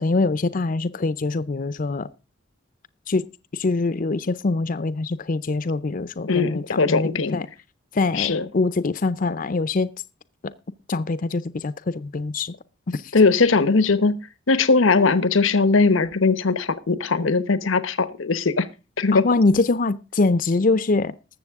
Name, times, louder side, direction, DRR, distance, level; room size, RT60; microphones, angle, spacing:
voice 1, 0.0-2.1 3.1-3.2 3.5-7.5 7.9-9.9 10.4-10.5 10.9-12.5 12.9-13.0 19.1-21.1, left 3 dB, 45° left, 0.5 m, -23 dB
voice 2, 6.3-7.4 8.1-8.5 13.1-14.2 14.5-18.7 19.0-19.2, left 4 dB, 90° left, 1.0 m, -19 dB
19.5 x 7.3 x 3.5 m
head